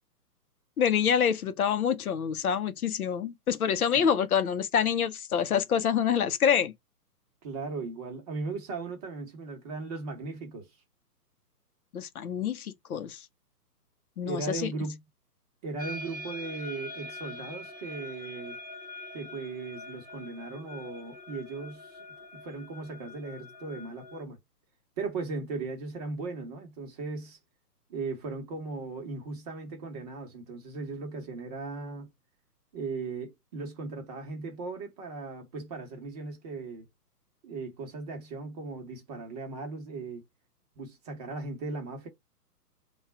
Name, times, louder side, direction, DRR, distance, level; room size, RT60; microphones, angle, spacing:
voice 1, 0.8-6.7 11.9-13.2 14.2-14.7, left 8 dB, 65° left, 0.7 m, -26 dB
voice 2, 7.4-10.7 14.2-15.0 15.6-18.6 19.1-22.0 22.3-24.4 25.0-27.4 27.9-32.1 32.7-36.8 37.4-40.2 40.8-42.1, right 3 dB, 25° right, 0.9 m, -37 dB
sound 1, 15.8-24.2, left 1 dB, 25° left, 0.3 m, -44 dB
3.6 x 2.3 x 4.2 m
hypercardioid pair, 135°, 48 cm